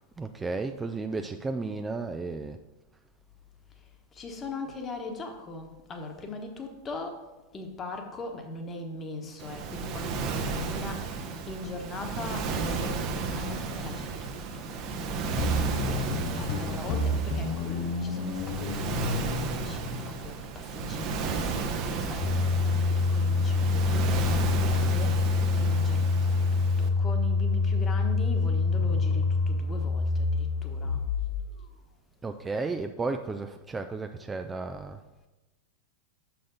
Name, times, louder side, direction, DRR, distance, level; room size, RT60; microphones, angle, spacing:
voice 1, 0.2-2.6 15.3-16.1 32.2-35.0, right 3 dB, 15° right, 0.4 m, -34 dB
voice 2, 4.1-7.2 7.5-11.1 11.5-14.2 14.5-14.6 16.0-25.2 25.5-31.0, left 2 dB, 25° left, 1.2 m, -40 dB
Waves surf, 9.4-26.9, right 4 dB, 45° right, 0.9 m, -33 dB
sound 1, 15.3-20.2, left 2 dB, 50° left, 0.6 m, -31 dB
sound 2, 22.2-31.4, left 4 dB, 65° left, 1.8 m, -26 dB
6.3 x 5.9 x 5.3 m
figure-of-eight pair, 90°, 0 cm